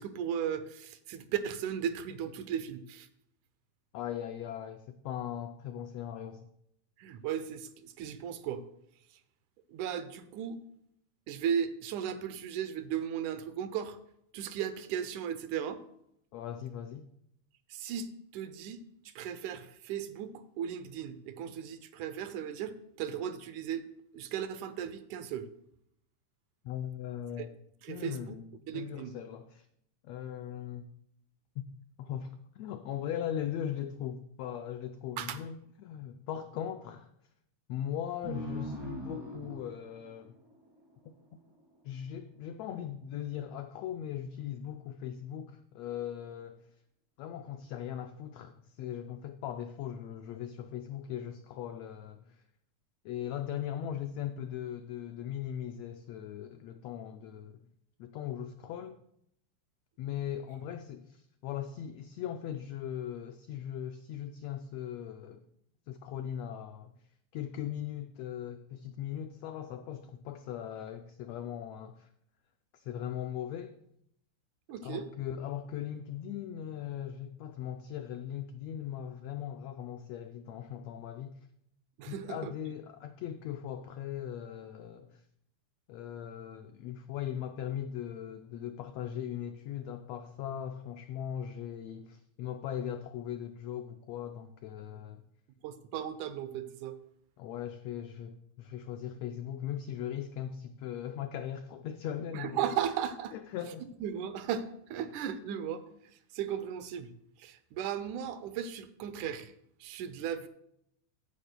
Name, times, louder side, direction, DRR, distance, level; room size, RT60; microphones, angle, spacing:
voice 1, 0.0-3.1 7.0-8.6 9.7-10.6 11.3-14.0 14.3-15.8 17.7-23.9 24.1-25.5 27.4-27.5 27.8-28.4 28.7-29.1 35.2-35.4 74.7-75.1 82.0-82.5 95.6-97.0 102.3-103.3 104.0-105.8 106.3-107.1 107.4-109.5 109.8-110.5, right 9 dB, 80° right, 2.1 m, -36 dB
voice 2, 3.9-6.5 16.3-17.1 26.6-27.6 27.9-28.5 28.7-29.7 30.0-30.9 31.6-31.7 32.0-37.1 37.7-40.4 41.8-46.7 47.2-52.4 53.0-57.6 58.0-59.0 60.0-65.4 65.9-66.9 67.3-72.1 72.7-73.7 74.8-81.5 82.1-85.2 85.9-95.2 97.4-102.6 103.3-103.9, left 10 dB, 90° left, 1.5 m, -39 dB
sound 1, 38.2-41.4, equal, 15° right, 0.9 m, -42 dB
14.5 x 10.0 x 2.2 m
omnidirectional pair, 3.6 m